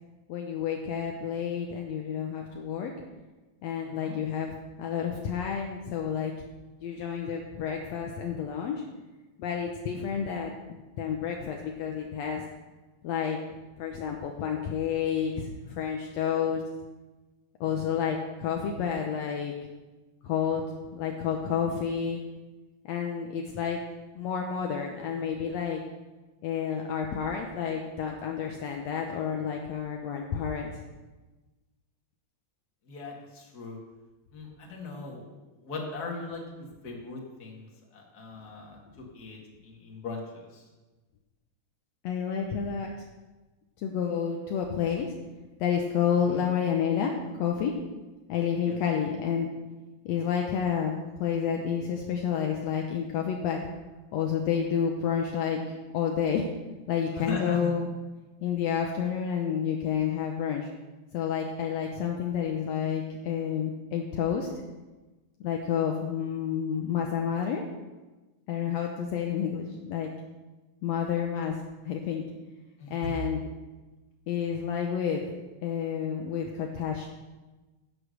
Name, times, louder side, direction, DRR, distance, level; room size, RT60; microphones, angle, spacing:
voice 1, 0.3-2.9 3.6-6.3 6.8-8.8 9.4-12.4 13.0-13.4 13.8-16.6 17.6-19.5 20.2-20.6 20.9-22.2 22.9-23.8 24.2-25.8 26.4-30.8 42.0-42.9 43.8-45.1 45.6-47.8 48.3-49.5 50.1-53.6 54.1-55.6 55.9-56.4 56.9-57.9 58.4-60.7 61.1-64.5 65.4-67.7 68.5-70.1 70.8-71.6 71.9-72.2 72.9-73.4 74.3-75.3 75.6-77.1, left 7 dB, 70° left, 2 dB, 2.0 m, -30 dB
voice 2, 3.8-4.2 32.9-33.8 34.3-35.3 35.6-40.6 46.3-46.5 48.7-49.2 57.1-57.7 72.8-73.2, left 3 dB, 35° left, 0 dB, 2.3 m, -39 dB
11.0 x 8.3 x 6.6 m, 1.2 s
omnidirectional pair, 3.4 m